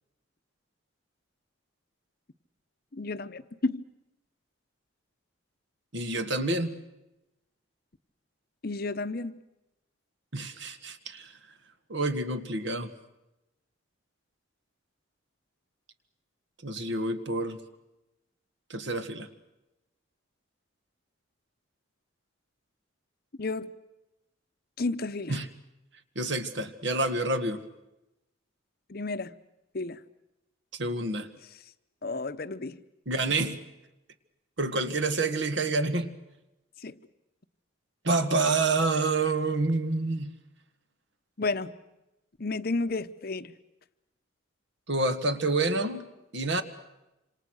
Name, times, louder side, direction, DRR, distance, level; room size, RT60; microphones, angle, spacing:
voice 1, 2.9-3.9 8.6-9.4 23.4-23.7 24.8-25.4 28.9-29.3 29.7-30.0 32.0-32.8 36.8-37.0 41.4-41.7 42.4-43.5, left 3 dB, 45° left, 12 dB, 0.8 m, -32 dB
voice 2, 5.9-6.8 10.3-11.3 11.9-12.9 16.6-17.6 18.7-19.3 25.3-25.5 26.2-27.6 30.7-31.3 33.1-33.7 34.6-36.1 38.0-40.3 44.9-46.1 46.3-46.6, right 2 dB, 60° right, 9 dB, 1.7 m, -28 dB
27.0 x 26.5 x 6.4 m, 0.94 s
head